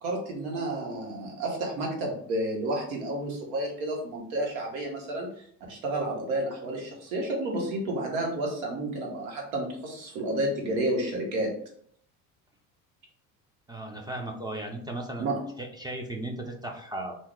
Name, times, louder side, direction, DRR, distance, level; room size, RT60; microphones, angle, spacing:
voice 1, 0.0-11.5 15.2-15.4, right 1 dB, 75° right, 0 dB, 1.1 m, -31 dB
voice 2, 13.7-17.2, right 1 dB, 10° right, 2 dB, 0.4 m, -36 dB
2.7 x 2.1 x 3.7 m, 0.63 s
hypercardioid pair, 75°, 42 cm